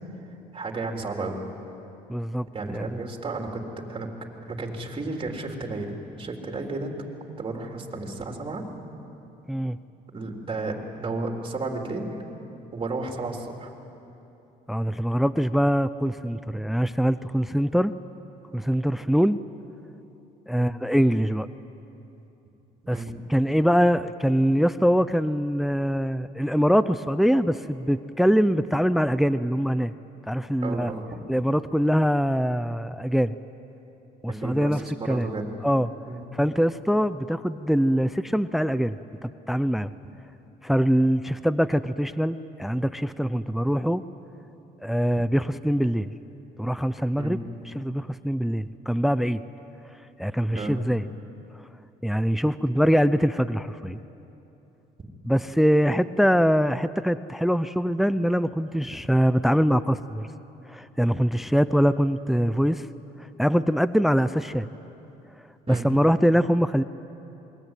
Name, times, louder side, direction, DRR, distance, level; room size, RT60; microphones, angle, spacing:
voice 1, 0.5-1.4 2.5-4.1 4.4-7.0 7.4-8.6 10.1-12.1 12.7-13.7 20.6-20.7 22.8-23.1 30.6-31.0 34.3-35.5 36.1-36.2 47.2-47.4 50.5-50.8 65.7-65.8, right 3 dB, 30° right, 1 dB, 3.8 m, -33 dB
voice 2, 2.1-2.9 9.5-9.8 14.7-17.9 18.5-19.4 20.5-21.5 22.9-23.0 23.3-29.9 30.3-30.9 31.3-33.4 34.2-35.3 35.6-35.9 36.3-39.0 39.2-39.9 40.6-44.0 44.8-46.1 46.6-47.4 47.7-49.4 50.2-51.1 52.0-54.0 55.3-60.3 60.7-62.9 63.4-64.7 65.7-66.8, equal, ahead, 14 dB, 0.6 m, -23 dB
28.0 x 22.0 x 9.2 m, 3.0 s
cardioid pair, 110°, 17 cm